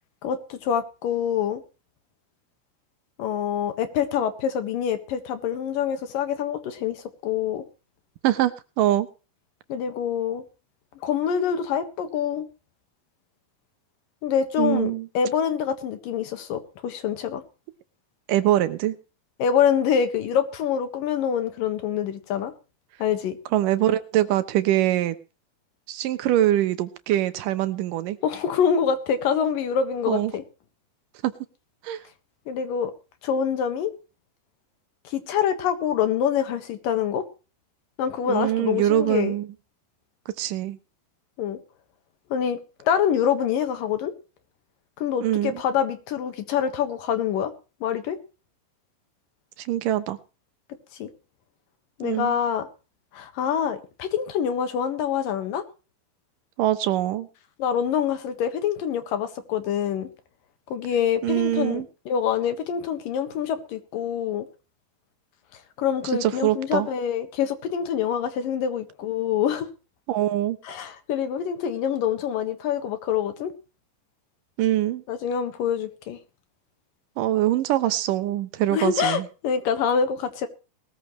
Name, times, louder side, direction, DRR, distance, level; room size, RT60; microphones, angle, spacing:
voice 1, 0.2-1.6 3.2-7.6 9.7-10.4 11.0-12.5 14.2-17.4 19.4-22.5 23.0-23.4 28.2-30.4 32.5-32.9 33.2-33.9 35.0-37.2 38.0-39.3 41.4-41.6 42.3-44.1 45.0-47.5 47.8-48.2 51.0-51.1 52.0-52.7 53.1-55.6 57.6-60.1 60.7-64.5 65.8-69.7 70.6-73.5 75.1-76.2 78.7-80.5, left 8 dB, 70° left, 3.1 m, -25 dB
voice 2, 8.8-9.1 14.6-15.1 18.3-19.0 23.5-25.2 25.9-28.2 30.1-30.3 31.2-31.3 31.8-32.0 38.3-39.5 40.4-40.8 45.2-45.6 49.6-50.2 52.0-52.4 56.6-57.3 61.2-61.9 66.1-66.9 70.1-70.6 74.6-75.0 77.2-79.3, right 13 dB, 70° right, 2.4 m, -23 dB
20.0 x 14.0 x 3.2 m
omnidirectional pair, 4.3 m